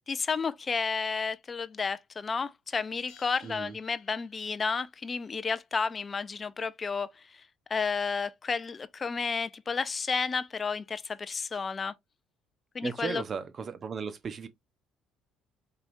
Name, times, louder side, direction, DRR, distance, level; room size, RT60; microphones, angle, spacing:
voice 1, 0.0-11.9 12.7-13.2, left 5 dB, 35° left, 0.5 m, -32 dB
Bell, 3.1-4.7, left 9 dB, 70° left, 1.0 m, -59 dB
voice 2, 3.4-3.7 12.8-14.5, right 6 dB, 40° right, 0.8 m, -36 dB
4.8 x 3.0 x 2.6 m
hypercardioid pair, 55°, 0 cm